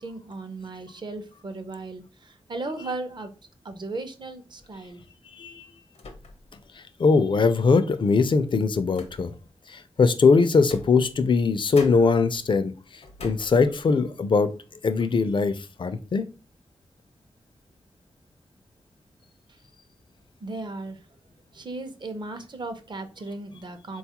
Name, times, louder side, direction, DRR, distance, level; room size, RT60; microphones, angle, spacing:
voice 1, 0.0-3.3 3.6-5.0 20.4-21.0 21.5-24.0, right 2 dB, 45° right, 8 dB, 0.6 m, -36 dB
sound 1, 4.6-4.9 5.9-6.6 7.0-7.1 8.1-9.5 10.5-11.5 11.7-14.1 14.5-14.7 15.0-15.3, left 3 dB, 85° left, 0.7 m, -46 dB
voice 2, 6.7-9.3 9.7-14.5 14.8-16.3, left 4 dB, 50° left, 11 dB, 0.4 m, -21 dB
3.9 x 2.3 x 2.8 m, 0.34 s
wide cardioid pair, 90°, 11 cm